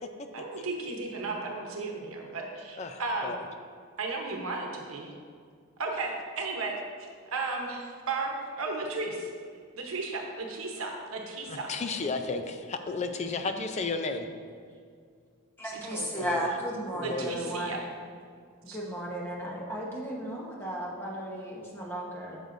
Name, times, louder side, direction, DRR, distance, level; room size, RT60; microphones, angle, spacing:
voice 1, 0.3-3.3 4.0-5.1 5.8-9.3 9.8-11.7 15.9-16.1 17.0-17.8 18.7-18.8, right 3 dB, 85° right, 1 dB, 0.9 m, -34 dB
voice 2, 2.8-3.4 11.5-14.3 16.2-16.5 16.9-17.4, left 4 dB, 30° left, 7 dB, 0.4 m, -33 dB
voice 3, 15.6-17.8 18.6-22.4, right 1 dB, 10° left, -3 dB, 1.0 m, -35 dB
8.8 x 6.7 x 2.6 m, 2.1 s
head